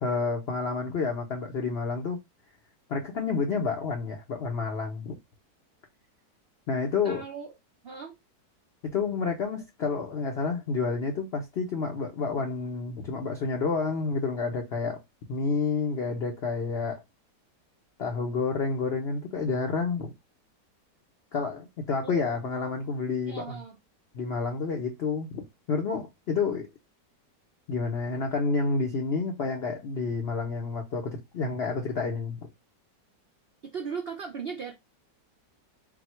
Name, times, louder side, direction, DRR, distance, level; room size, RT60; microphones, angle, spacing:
voice 1, 0.0-2.2 2.9-5.2 6.7-7.2 8.8-15.0 15.3-17.0 18.0-20.1 21.3-23.6 24.1-26.7 27.7-32.4, left 4 dB, 55° left, 0.7 m, -29 dB
voice 2, 7.0-7.5 7.8-8.2 22.0-22.5 23.3-23.8 33.6-34.7, right 6 dB, 85° right, 0.5 m, -37 dB
4.2 x 2.1 x 4.3 m
omnidirectional pair, 1.9 m